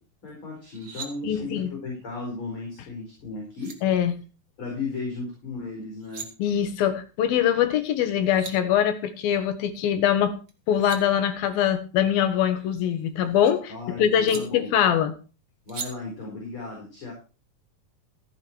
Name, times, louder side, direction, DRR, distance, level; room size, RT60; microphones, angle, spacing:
voice 1, 0.2-3.8 4.6-6.3 13.7-14.7 15.7-17.1, left 3 dB, 35° left, -1 dB, 5.6 m, -35 dB
sound 1, 0.6-1.1 3.1-3.2 3.6-3.8 5.8-6.3 7.9-8.0 8.2-8.5 10.5-11.0 12.5-13.5 14.3-14.4 15.7-15.9, right 5 dB, 40° right, 1.5 m, -39 dB
voice 2, 1.2-1.7 3.8-4.2 6.4-10.4 10.7-15.1, left 9 dB, 80° left, 9 dB, 3.3 m, -23 dB
15.0 x 8.3 x 4.6 m, 0.34 s
omnidirectional pair, 4.1 m